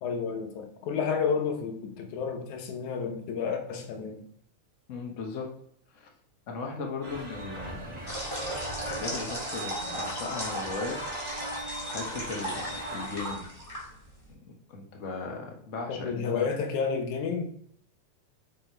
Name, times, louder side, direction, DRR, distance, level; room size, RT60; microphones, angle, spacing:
voice 1, 0.0-4.2 15.9-17.4, left 6 dB, 80° left, 4 dB, 2.4 m, -31 dB
voice 2, 4.9-5.5 5.9-6.1 6.5-8.1 8.8-11.0 11.9-13.4 14.3-16.5, left 4 dB, 55° left, 1 dB, 0.8 m, -37 dB
sound 1, 7.0-13.3, right 1 dB, 40° right, 0.5 m, -39 dB
sound 2, 8.1-14.3, equal, 10° left, 1.8 m, -37 dB
5.9 x 5.4 x 4.5 m, 0.66 s
omnidirectional pair, 3.5 m